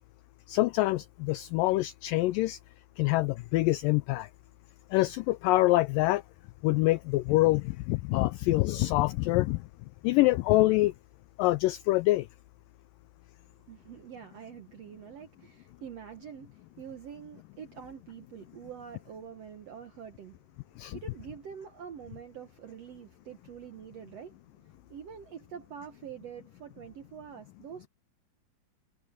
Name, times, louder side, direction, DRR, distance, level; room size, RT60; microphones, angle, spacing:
voice 1, 0.5-2.6 3.0-4.3 4.9-6.2 6.6-9.6 10.0-10.9 11.4-12.3 20.8-21.0, left 18 dB, 90° left, 1.9 m, -25 dB
voice 2, 13.7-20.4 20.8-27.9, right 8 dB, 70° right, 1.5 m, -46 dB
omnidirectional pair, 4.5 m